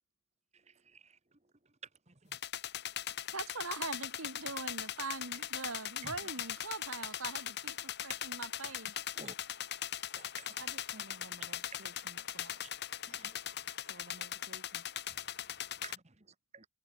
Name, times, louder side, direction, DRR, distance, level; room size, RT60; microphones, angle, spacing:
voice 1, 0.5-1.1 2.1-2.4 6.0-6.1 9.2-9.3 10.2-10.6 13.1-13.5 15.1-16.6, right 4 dB, 30° right, 1.6 m, -53 dB
sound 1, 2.3-16.0, left 10 dB, 50° left, 1.4 m, -40 dB
voice 2, 3.3-9.0, right 3 dB, 85° right, 5.1 m, -42 dB
voice 3, 10.6-12.9 13.8-14.9, right 2 dB, 55° right, 2.9 m, -55 dB
head